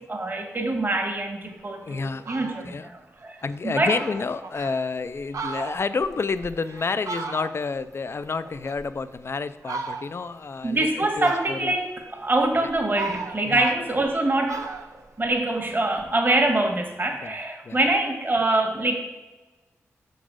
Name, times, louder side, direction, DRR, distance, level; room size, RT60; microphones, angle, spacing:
voice 1, 0.0-4.0 10.6-14.7 15.2-19.0, right 2 dB, 40° right, 1 dB, 1.5 m, -24 dB
Fowl, 1.6-1.7 2.1-2.7 3.2-3.3 3.5-3.6 3.8-4.7 5.2-7.8 8.2-9.2 9.6-10.3 11.2-11.9 12.4-14.2 14.5-16.1, right 4 dB, 80° right, 0.6 m, -36 dB
voice 2, 1.8-2.3 2.6-2.9 3.4-11.7 13.4-13.7 17.2-17.3 17.6-17.8, left 4 dB, 50° left, 13 dB, 0.4 m, -29 dB
6.1 x 4.0 x 6.3 m, 1.1 s
cardioid pair, 50°, 5 cm